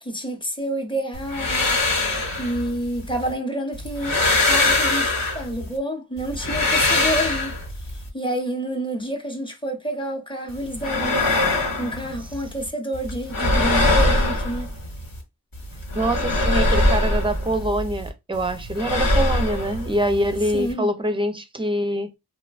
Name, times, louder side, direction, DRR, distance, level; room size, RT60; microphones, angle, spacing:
voice 1, 0.0-1.8 2.4-11.3 11.8-14.7 20.5-20.9, right 1 dB, 10° left, 0.8 m, -29 dB
sound 1, 1.1-3.3 3.7-5.8 6.2-8.1 10.5-12.7 12.9-15.2 15.5-18.1 18.3-20.7, left 2 dB, 60° left, 1.0 m, -23 dB
voice 2, 15.9-22.1, equal, 15° right, 0.5 m, -24 dB
3.2 x 2.2 x 2.4 m
wide cardioid pair, 45°, 39 cm